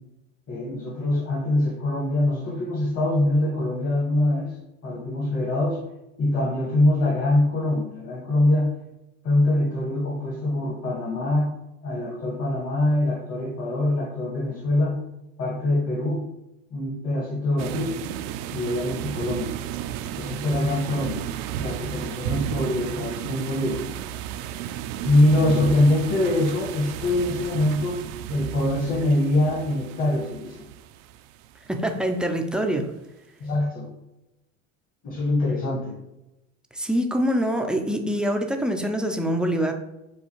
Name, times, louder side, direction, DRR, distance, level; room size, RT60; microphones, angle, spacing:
voice 1, 0.5-4.6 4.8-5.8 6.2-8.8 9.2-11.5 11.8-15.0 15.4-16.3 16.7-18.0 18.5-19.5 20.2-21.2 21.6-23.8 25.0-28.0 28.3-30.7 33.4-33.9 35.0-36.0, left 1 dB, 40° left, -3 dB, 1.4 m, -24 dB
sound 1, 17.6-32.1, right 11 dB, 65° right, 0.5 m, -33 dB
voice 2, 31.7-32.9 36.7-39.7, equal, ahead, 3 dB, 0.4 m, -24 dB
6.9 x 2.3 x 3.0 m, 0.94 s
supercardioid pair, 95°, 39 cm